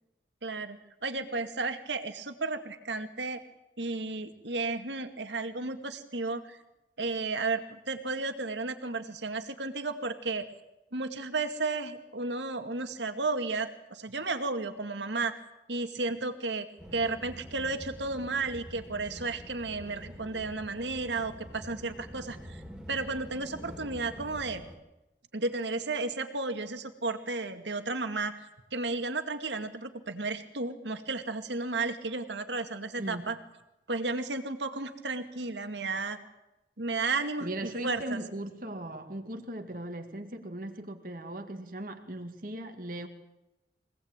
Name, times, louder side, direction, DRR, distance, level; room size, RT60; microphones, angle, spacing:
voice 1, 0.4-0.8 1.0-3.4 3.8-6.6 7.0-10.5 10.9-15.4 15.7-16.7 16.9-22.6 22.9-24.6 25.3-33.4 33.9-36.2 36.8-38.2, right 3 dB, 85° right, 7 dB, 2.3 m, -33 dB
sound 1, 16.8-24.8, equal, 5° right, 2.8 m, -46 dB
voice 2, 33.0-33.3 37.4-43.1, right 1 dB, 50° right, 4 dB, 2.2 m, -38 dB
25.0 x 18.5 x 9.0 m, 0.95 s
head